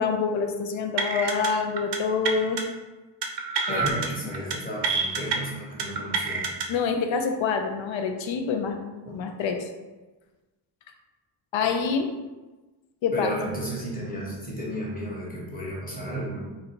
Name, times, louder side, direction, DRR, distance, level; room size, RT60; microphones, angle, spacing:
voice 1, 0.0-2.6 3.7-3.8 6.7-8.8 9.1-9.6 11.5-12.1 13.0-13.3, left 5 dB, 90° left, 5 dB, 0.5 m, -26 dB
sound 1, 1.0-1.5 1.8-2.0 2.3-2.6 3.2-4.1 4.3-4.6 4.8-5.4 5.8-6.7, right 5 dB, 65° right, 0.6 m, -27 dB
voice 2, 3.7-6.5 9.0-9.1 13.1-16.4, equal, 20° left, -4 dB, 0.9 m, -33 dB
2.7 x 2.6 x 4.3 m, 1.2 s
wide cardioid pair, 125°, 45 cm